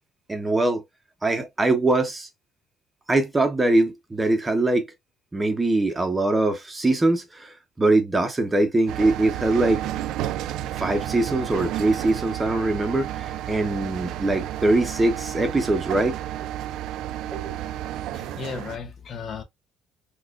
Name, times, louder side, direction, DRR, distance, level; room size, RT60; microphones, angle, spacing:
voice 1, 0.3-0.8 1.2-2.3 3.1-4.8 5.3-9.8 10.8-16.5 17.3-17.6, right 2 dB, 15° right, 0.8 m, -22 dB
sound 1, 8.9-18.8, right 12 dB, 75° right, 0.3 m, -31 dB
voice 2, 18.1-19.4, left 5 dB, 50° left, 0.8 m, -35 dB
4.1 x 2.4 x 2.4 m
cardioid pair, 105°, 0 cm